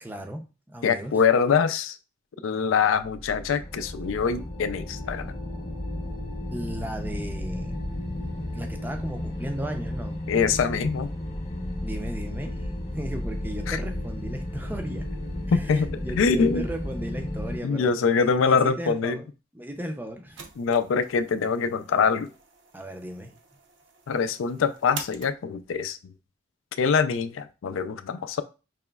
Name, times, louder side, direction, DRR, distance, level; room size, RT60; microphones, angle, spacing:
voice 1, 0.0-1.2 6.5-7.7 8.5-10.2 11.8-15.1 15.5-19.2 19.5-20.5 22.7-23.3, right 1 dB, 10° right, 0.4 m, -36 dB
voice 2, 0.8-2.0 2.4-5.3 10.3-11.1 13.7-13.8 15.5-16.6 17.6-19.2 20.6-22.3 24.1-26.1 26.8-28.4, left 5 dB, 80° left, 0.4 m, -24 dB
sound 1, 3.0-17.6, left 1 dB, 35° left, 0.7 m, -33 dB
sound 2, 19.7-25.8, right 6 dB, 65° right, 0.6 m, -45 dB
4.8 x 3.0 x 2.3 m
head